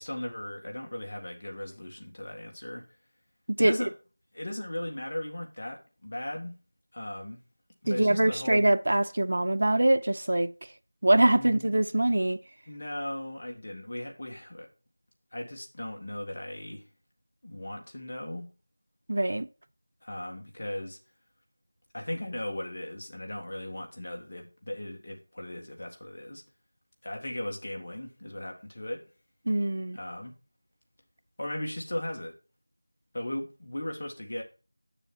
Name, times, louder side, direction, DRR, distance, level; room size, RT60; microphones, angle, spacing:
voice 1, 0.0-2.8 3.6-3.9 4.3-6.6 6.9-7.4 7.8-8.7 11.3-11.7 12.7-14.7 15.3-16.8 17.4-18.5 20.0-21.0 21.9-26.4 27.0-29.0 29.9-30.3 31.4-32.3 33.1-34.4, left 1 dB, 40° left, 1.9 m, -37 dB
voice 2, 7.9-10.5 11.0-12.4 19.1-19.5 29.5-30.0, right 1 dB, 50° right, 0.6 m, -23 dB
7.7 x 6.9 x 4.4 m
figure-of-eight pair, 175°, 0 cm